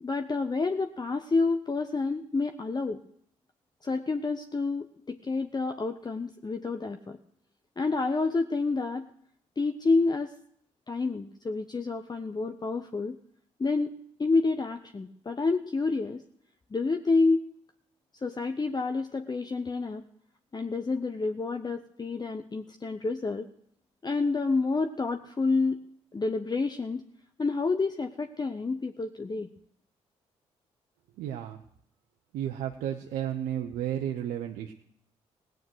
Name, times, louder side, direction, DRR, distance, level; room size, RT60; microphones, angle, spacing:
voice 1, 0.0-3.0 3.8-7.2 7.8-9.1 9.6-10.3 10.9-13.2 13.6-16.2 16.7-17.4 18.2-20.0 20.5-23.5 24.0-25.8 26.1-27.1 27.4-29.5, left 3 dB, 30° left, 7 dB, 0.9 m, -29 dB
voice 2, 31.2-31.6 32.3-34.7, right 10 dB, 75° right, 4 dB, 0.8 m, -32 dB
17.0 x 9.2 x 6.2 m, 0.70 s
hypercardioid pair, 45°, 15 cm